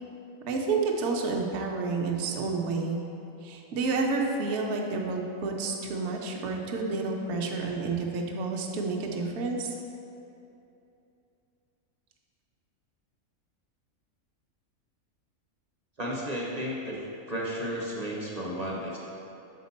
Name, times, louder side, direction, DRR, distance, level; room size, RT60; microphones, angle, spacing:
voice 1, 0.5-3.0 3.4-9.7, right 3 dB, 65° right, 1 dB, 0.9 m, -30 dB
voice 2, 16.0-17.0 17.3-19.0, equal, 35° right, -4 dB, 0.7 m, -33 dB
6.5 x 4.3 x 4.2 m, 2.7 s
omnidirectional pair, 1.5 m